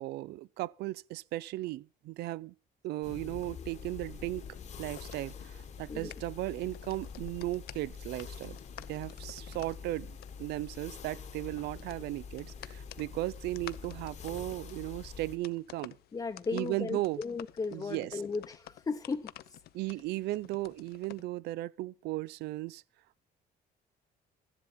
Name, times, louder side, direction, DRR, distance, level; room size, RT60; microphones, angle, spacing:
voice 1, 0.0-2.5 2.8-4.5 4.8-8.6 8.9-16.0 16.5-17.2 17.7-18.2 19.7-22.8, right 17 dB, 75° right, 0.5 m, -36 dB
sound 1, 3.0-15.4, left 6 dB, 45° left, 1.2 m, -46 dB
sound 2, 4.4-21.2, left 13 dB, 65° left, 0.7 m, -53 dB
voice 2, 16.1-19.6, left 4 dB, 25° left, 0.8 m, -36 dB
13.5 x 11.0 x 4.3 m
cardioid pair, 110°, 17 cm